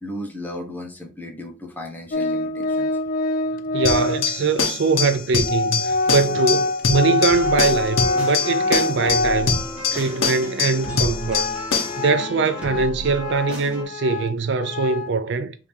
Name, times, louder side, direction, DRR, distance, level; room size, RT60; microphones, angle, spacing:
voice 1, 0.0-2.9, left 1 dB, 10° left, 1.0 m, -35 dB
Organ, 2.1-4.4 5.1-5.2 5.4-9.8 10.2-10.3 10.8-15.2, left 2 dB, 45° left, 0.4 m, -25 dB
voice 2, 3.7-9.6 9.9-11.5 12.0-15.5, right 4 dB, 65° right, 0.5 m, -22 dB
sound 1, 3.8-12.0, left 5 dB, 85° left, 1.0 m, -24 dB
sound 2, 7.3-13.8, right 1 dB, 5° right, 1.6 m, -34 dB
4.9 x 2.8 x 3.4 m
head